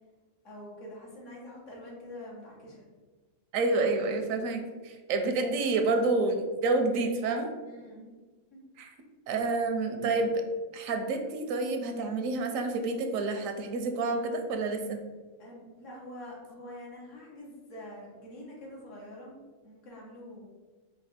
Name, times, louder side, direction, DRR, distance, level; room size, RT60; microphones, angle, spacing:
voice 1, 0.4-2.9 7.6-8.2 8.5-8.6 15.4-20.5, left 1 dB, 70° left, -4 dB, 1.5 m, -46 dB
voice 2, 3.5-7.5 8.8-8.9 9.3-10.4 10.7-15.0, right 3 dB, 85° right, 5 dB, 1.0 m, -29 dB
4.3 x 2.4 x 4.1 m, 1.3 s
omnidirectional pair, 1.3 m